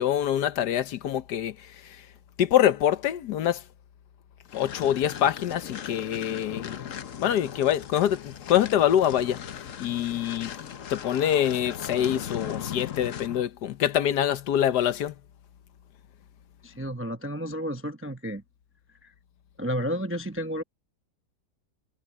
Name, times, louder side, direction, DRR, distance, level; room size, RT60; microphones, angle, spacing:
voice 1, 0.0-1.5 2.4-3.6 4.5-6.8 7.2-9.4 9.8-10.5 10.9-15.1, left 10 dB, 75° left, 1.4 m, -25 dB
sound 1, 4.5-13.5, left 9 dB, 55° left, 1.2 m, -38 dB
voice 2, 16.6-18.4 19.0-19.1 19.6-20.6, equal, 15° right, 0.4 m, -31 dB
omnidirectional pair, 1.8 m